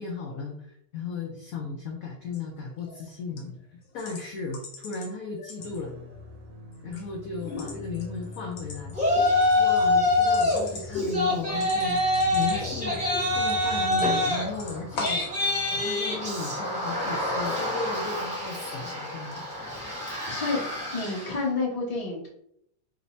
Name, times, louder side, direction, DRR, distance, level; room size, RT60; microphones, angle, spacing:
voice 1, 0.0-5.9 6.8-9.0 9.5-12.0 12.3-13.0 13.3-15.2 15.7-19.4, left 4 dB, 85° left, 1 dB, 0.7 m, -35 dB
sound 1, 2.2-2.4 2.8-3.1 3.4-3.5 4.0-5.1 5.4-6.1 6.5-7.1 7.3-14.3 14.5-15.3, left 3 dB, 60° left, 1.2 m, -37 dB
sound 2, 5.6-16.3, left 4 dB, 75° right, 1.4 m, -43 dB
Yell, 8.9-10.6 10.9-21.4, left 2 dB, 5° right, 0.8 m, -26 dB
voice 2, 20.3-20.6 20.9-22.3, left 3 dB, 30° left, -4 dB, 0.6 m, -29 dB
3.3 x 2.0 x 4.0 m, 0.72 s
omnidirectional pair, 2.0 m